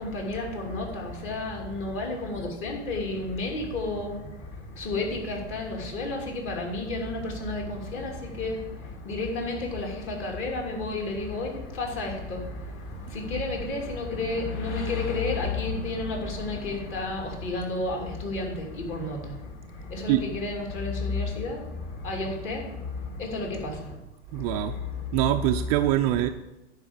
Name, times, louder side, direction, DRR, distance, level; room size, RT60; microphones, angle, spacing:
voice 1, 0.0-24.0 24.3-25.2, left 2 dB, 35° left, 1 dB, 2.8 m, -32 dB
voice 2, 24.3-24.8 25.1-26.3, right 14 dB, 35° right, 8 dB, 0.4 m, -24 dB
10.0 x 4.9 x 7.0 m, 0.98 s
hypercardioid pair, 110°, 35 cm